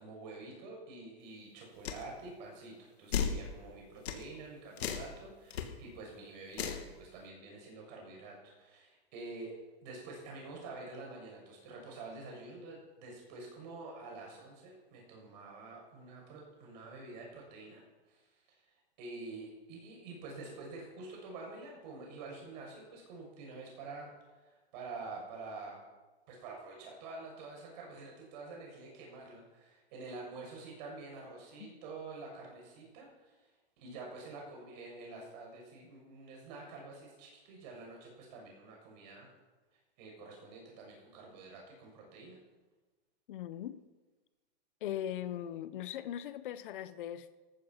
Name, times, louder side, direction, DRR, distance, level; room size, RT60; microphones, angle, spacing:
voice 1, 0.0-9.5 9.8-17.8 18.1-18.2 19.0-24.1 24.4-25.8 26.3-33.4 33.8-39.3 40.0-42.4, right 3 dB, 45° right, -1 dB, 6.9 m, -47 dB
sound 1, 1.8-2.0 3.1-3.4 4.1-4.2 4.8-5.1 5.5-5.6 6.5-6.8, left 7 dB, 80° left, 2.6 m, -34 dB
voice 2, 43.3-43.8 44.8-47.3, left 11 dB, 55° left, 14 dB, 1.1 m, -40 dB
15.0 x 13.0 x 5.9 m, 1.2 s
supercardioid pair, 165°, 31 cm